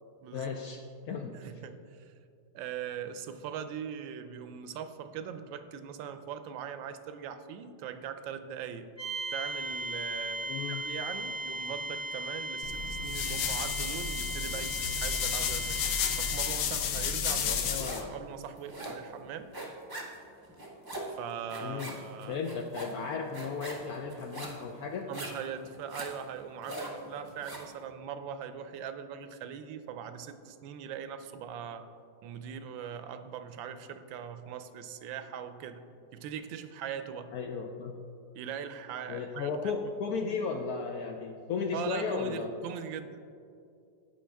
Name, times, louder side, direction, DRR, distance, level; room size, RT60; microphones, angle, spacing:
voice 1, 0.3-1.3 10.5-10.8 17.4-18.1 21.6-22.0 22.3-25.1 37.3-37.9 39.1-42.5, left 5 dB, 75° left, 3 dB, 0.9 m, -35 dB
voice 2, 1.3-2.1 2.5-8.9 9.3-15.8 16.2-19.5 21.1-22.4 25.1-31.9 32.2-35.8 36.1-37.3 38.3-39.5 39.9-40.0 41.7-43.2, right 8 dB, 80° right, 10 dB, 1.3 m, -41 dB
sound 1, 9.0-16.7, right 2 dB, 5° left, 0.9 m, -37 dB
sound 2, 12.6-18.0, left 7 dB, 90° left, 1.5 m, -32 dB
sound 3, 17.5-18.2 18.4-27.7, right 1 dB, 20° right, 0.5 m, -42 dB
15.5 x 5.3 x 3.4 m, 2.5 s
omnidirectional pair, 2.1 m